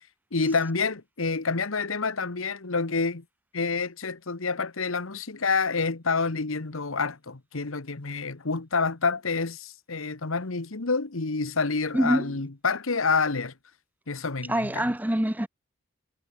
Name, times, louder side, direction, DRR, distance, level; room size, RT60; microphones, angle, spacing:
voice 1, 0.3-3.2 3.5-13.5 14.1-14.9, left 4 dB, 85° left, 1.3 m, -28 dB
voice 2, 11.9-12.3 14.5-15.5, right 1 dB, 10° right, 0.7 m, -25 dB
head